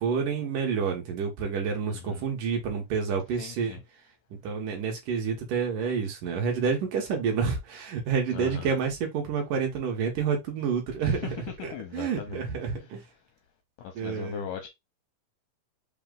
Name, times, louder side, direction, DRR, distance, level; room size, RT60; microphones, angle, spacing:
voice 1, 0.0-3.8 4.3-11.4 11.6-13.0 14.0-14.4, right 6 dB, 70° right, 2.4 m, -29 dB
voice 2, 1.9-2.2 3.4-3.8 8.3-8.8 11.0-11.3 11.6-12.5 13.8-14.7, left 8 dB, 80° left, 1.9 m, -39 dB
5.8 x 2.2 x 3.7 m
omnidirectional pair, 4.2 m